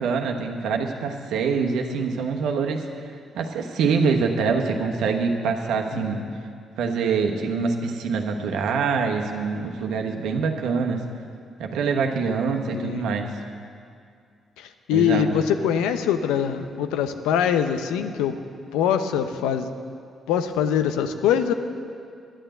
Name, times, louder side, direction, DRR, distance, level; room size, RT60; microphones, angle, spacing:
voice 1, 0.0-2.8 3.3-6.2 6.8-11.0 11.6-13.3 14.9-15.3, right 5 dB, 75° right, 3 dB, 1.2 m, -25 dB
voice 2, 5.9-6.2 12.7-13.0 14.6-18.3 18.7-19.7 20.3-21.5, left 8 dB, 85° left, 9 dB, 0.7 m, -23 dB
11.5 x 8.9 x 7.9 m, 2.3 s
supercardioid pair, 55°, 0 cm